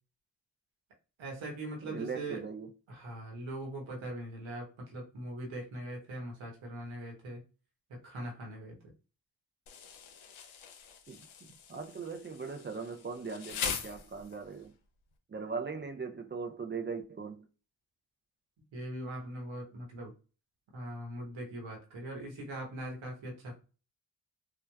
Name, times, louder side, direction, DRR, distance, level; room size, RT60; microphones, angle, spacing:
voice 1, 1.2-2.4 2.9-7.4 7.9-8.7 18.7-20.1 20.7-23.5, right 1 dB, 75° right, 1.0 m, -41 dB
voice 2, 1.8-2.7 11.1-14.7 15.3-17.5, right 5 dB, 25° right, 0.4 m, -40 dB
Insect, 9.7-14.6, left 7 dB, 85° left, 0.6 m, -42 dB
3.2 x 2.2 x 2.2 m
cardioid pair, 45°, 47 cm